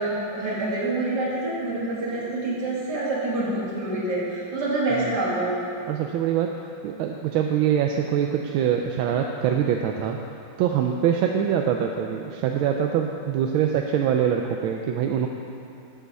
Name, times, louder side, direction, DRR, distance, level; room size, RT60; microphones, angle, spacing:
voice 1, 0.0-5.5, right 2 dB, 55° right, -7 dB, 2.9 m, -26 dB
voice 2, 5.9-6.5 6.8-10.2 10.6-15.3, right 9 dB, 85° right, 2 dB, 1.4 m, -24 dB
13.0 x 8.1 x 4.1 m, 2.7 s
omnidirectional pair, 2.2 m